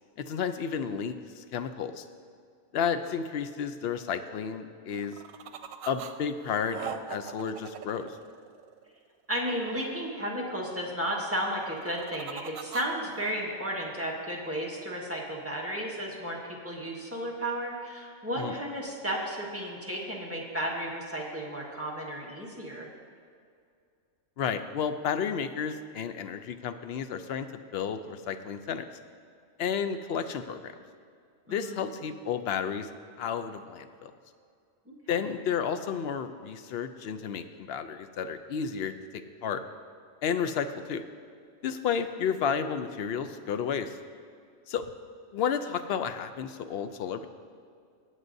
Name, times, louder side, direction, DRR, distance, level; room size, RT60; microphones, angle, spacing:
voice 1, 0.3-2.1 2.7-5.2 5.9-8.2 18.4-18.6 24.4-27.5 27.7-28.8 29.6-30.7 31.5-32.9 33.2-34.1 35.1-39.6 40.2-41.0 41.6-44.0 44.7-44.9 45.3-47.3, left 7 dB, 60° left, 9 dB, 0.7 m, -32 dB
sound 1, 4.9-6.1 6.4-8.9 11.5-13.3, right 8 dB, 90° right, 1.0 m, -41 dB
voice 2, 9.3-16.4 16.6-22.9 31.5-31.8 34.9-35.0, equal, 10° right, -4 dB, 1.4 m, -33 dB
19.5 x 8.0 x 2.7 m, 2.3 s
omnidirectional pair, 1.4 m